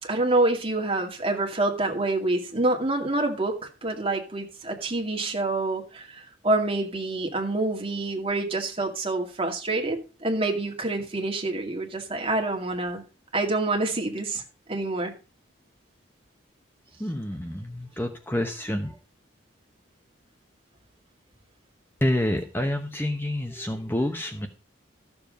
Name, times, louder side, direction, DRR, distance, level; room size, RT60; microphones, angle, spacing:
voice 1, 0.0-13.0 13.3-14.4 14.7-15.1, right 2 dB, 30° right, 2.2 m, -27 dB
voice 2, 17.0-19.0 22.0-24.5, left 1 dB, 10° left, 0.9 m, -28 dB
13.5 x 7.1 x 5.2 m
head